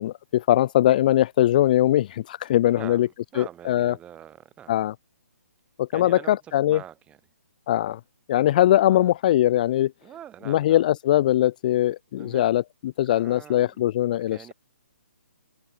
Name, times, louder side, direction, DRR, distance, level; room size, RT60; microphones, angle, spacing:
voice 1, 0.0-3.1 3.4-3.9 4.7-4.9 5.8-6.8 7.7-8.0 8.3-9.9 10.5-14.5, left 13 dB, 35° left, 0.4 m, -21 dB
voice 2, 2.7-4.8 5.9-7.2 8.8-9.1 10.0-10.8 12.1-12.5 13.1-13.8 14.1-14.5, right 11 dB, 15° right, 3.1 m, -44 dB
figure-of-eight pair, 135°, 8 cm